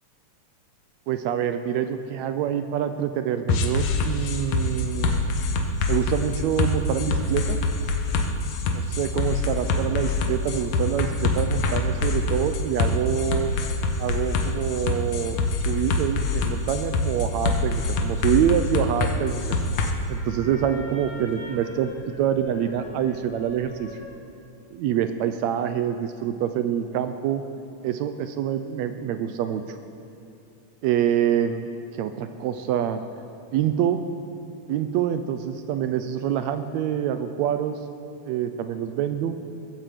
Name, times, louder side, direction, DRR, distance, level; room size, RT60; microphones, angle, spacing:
voice 1, 1.1-5.3 5.9-7.6 8.7-13.5 14.0-15.4 15.6-19.6 20.1-21.9 22.2-23.9 24.7-27.4 27.8-29.8 30.8-33.0 33.5-34.0 34.7-37.8 38.2-39.3, right 9 dB, 80° right, 9 dB, 1.6 m, -26 dB
sound 1, 3.5-19.9, left 3 dB, 70° left, 2.3 m, -25 dB
sound 2, 17.6-24.2, left 1 dB, 30° left, 0.5 m, -44 dB
16.5 x 15.0 x 5.0 m, 2.8 s
omnidirectional pair, 3.6 m